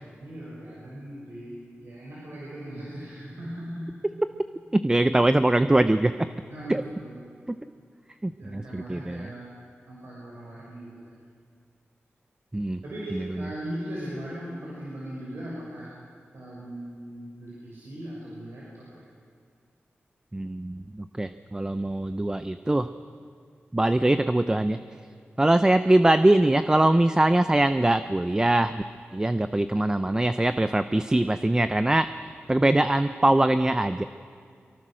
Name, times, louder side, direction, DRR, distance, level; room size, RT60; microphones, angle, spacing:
voice 1, 0.0-3.9 6.5-7.2 8.4-9.5 9.9-11.2 12.8-15.9 16.3-19.0, right 1 dB, 75° right, -6 dB, 6.2 m, -39 dB
voice 2, 4.7-6.3 6.7-6.8 7.5-7.6 8.2-9.3 12.5-12.8 13.1-13.2 20.3-22.9 23.7-24.8 25.4-28.8 29.1-32.1 32.5-34.0, right 1 dB, 15° right, 11 dB, 0.6 m, -22 dB
24.0 x 23.5 x 6.4 m, 2.2 s
wide cardioid pair, 90°, 4 cm